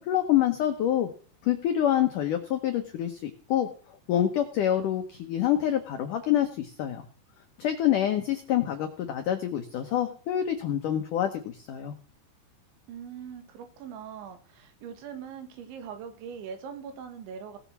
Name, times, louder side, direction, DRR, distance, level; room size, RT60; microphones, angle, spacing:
voice 1, 0.1-1.1 1.4-3.7 4.1-7.0 7.6-11.9, left 11 dB, 85° left, 6 dB, 1.8 m, -26 dB
voice 2, 12.9-17.6, right 7 dB, 80° right, 8 dB, 4.0 m, -41 dB
18.0 x 7.1 x 6.1 m, 0.43 s
omnidirectional pair, 5.3 m